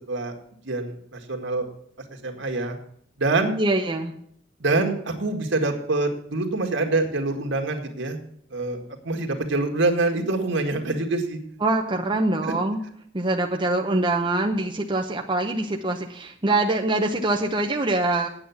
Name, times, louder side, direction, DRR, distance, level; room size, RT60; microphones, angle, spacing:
voice 1, 0.6-1.7 2.2-2.8 3.2-3.5 4.6-8.2 8.5-8.8 9.0-11.4 12.4-12.5, right 2 dB, 70° right, 4 dB, 2.0 m, -25 dB
voice 2, 3.6-4.1 11.6-12.8 13.1-18.3, right 2 dB, 25° right, 2 dB, 0.9 m, -24 dB
8.8 x 8.8 x 7.1 m, 0.67 s
head